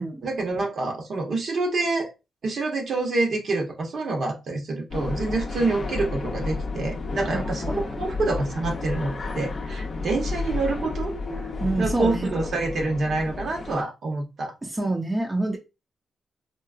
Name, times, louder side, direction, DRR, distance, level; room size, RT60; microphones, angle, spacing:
voice 1, 0.2-2.1 2.4-11.5 11.8-14.5, right 3 dB, 60° right, 0.8 m, -27 dB
sound 1, 4.9-13.8, left 3 dB, 45° left, 0.5 m, -32 dB
voice 2, 7.3-7.7 11.6-12.3 14.7-15.6, right 2 dB, 20° right, 0.5 m, -27 dB
3.8 x 2.1 x 2.4 m
cardioid pair, 115°, 0 cm